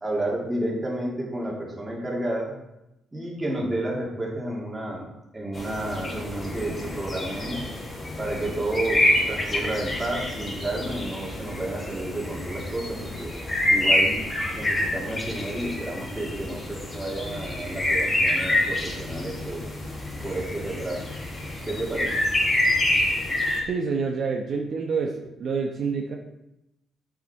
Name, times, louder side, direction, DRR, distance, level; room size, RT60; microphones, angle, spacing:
voice 1, 0.0-2.6 3.1-5.1 5.3-7.7 8.2-13.3 13.7-14.2 14.5-19.7 20.2-21.1 21.7-22.2, right 1 dB, 15° right, -3 dB, 2.8 m, -31 dB
sound 1, 5.5-23.6, left 1 dB, 35° left, 3.0 m, -27 dB
voice 2, 23.7-26.2, right 5 dB, 55° right, 1 dB, 0.9 m, -27 dB
8.3 x 6.4 x 4.4 m, 0.87 s
cardioid pair, 90°, 0 cm